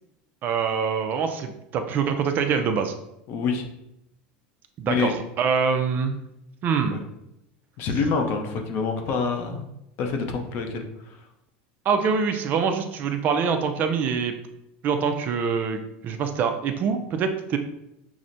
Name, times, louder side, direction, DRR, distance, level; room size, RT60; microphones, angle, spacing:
voice 1, 0.4-2.9 4.8-6.2 6.6-7.0 11.9-14.3 14.8-17.6, right 6 dB, 35° right, 7 dB, 0.4 m, -24 dB
voice 2, 3.3-3.6 4.9-5.1 6.9-7.0 7.8-9.6 10.0-11.2, left 5 dB, 45° left, 4 dB, 0.6 m, -26 dB
5.8 x 2.0 x 2.6 m, 0.84 s
supercardioid pair, 135°, 5 cm